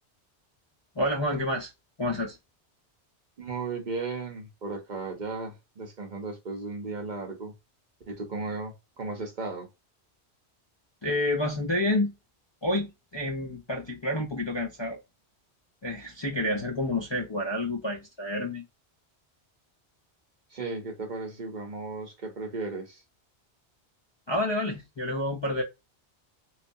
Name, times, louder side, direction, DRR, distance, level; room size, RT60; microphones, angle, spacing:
voice 1, 1.0-1.7 2.0-2.4 11.0-12.1 12.6-15.0 15.8-18.6 24.3-25.6, left 1 dB, 35° left, 0.4 m, -29 dB
voice 2, 3.4-7.5 8.1-9.7 20.5-23.0, right 3 dB, 45° right, 0.8 m, -35 dB
3.2 x 2.1 x 2.6 m
omnidirectional pair, 1.1 m